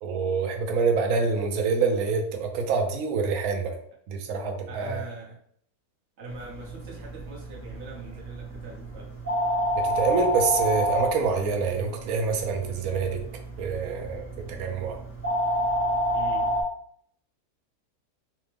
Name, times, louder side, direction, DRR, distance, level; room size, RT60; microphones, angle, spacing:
voice 1, 0.0-3.7 4.1-5.0 9.8-13.2 13.6-15.0, right 5 dB, 75° right, 3 dB, 1.0 m, -26 dB
voice 2, 4.7-5.4 6.2-9.1 16.1-16.5, right 3 dB, 50° right, -3 dB, 1.1 m, -42 dB
sound 1, 6.3-16.6, equal, 20° left, 0.3 m, -29 dB
3.3 x 2.0 x 3.2 m, 0.64 s
omnidirectional pair, 1.6 m